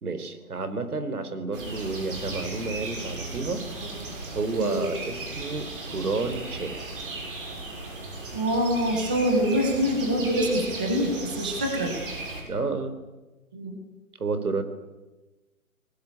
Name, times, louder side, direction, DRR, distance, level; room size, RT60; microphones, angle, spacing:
voice 1, 0.0-3.6 4.3-6.9 12.5-12.9 14.2-14.6, right 3 dB, 75° right, 10 dB, 4.1 m, -30 dB
sound 1, 1.5-12.4, right 2 dB, 35° right, 6.8 m, -36 dB
voice 2, 8.3-11.9 13.5-13.8, equal, 5° right, 2 dB, 0.8 m, -25 dB
28.0 x 20.0 x 8.5 m, 1.2 s
hypercardioid pair, 170°, 45 cm